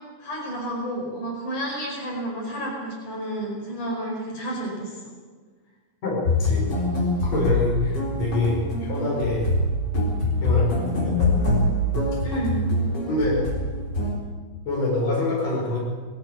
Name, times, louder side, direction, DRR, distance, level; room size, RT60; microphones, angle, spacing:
voice 1, 0.2-4.9 12.2-12.6, right 1 dB, 65° left, -1 dB, 6.7 m, -31 dB
voice 2, 6.0-6.6 7.3-9.4 10.4-11.1 13.1-13.4 14.7-15.8, left 2 dB, 50° left, -4 dB, 6.0 m, -25 dB
sound 1, 6.3-14.1, left 2 dB, 30° left, 4.8 m, -24 dB
19.5 x 16.0 x 8.6 m, 1.5 s
omnidirectional pair, 3.8 m